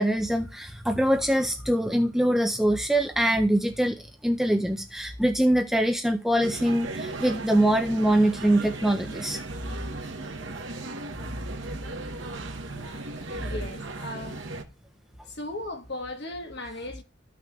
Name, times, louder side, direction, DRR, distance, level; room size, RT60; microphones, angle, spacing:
voice 1, 0.0-9.4, right 1 dB, ahead, 0.3 m, -23 dB
sound 1, 6.4-14.6, right 2 dB, 60° right, 1.0 m, -37 dB
voice 2, 13.4-14.4 15.3-17.0, left 1 dB, 50° left, 1.2 m, -36 dB
13.5 x 5.9 x 2.3 m
head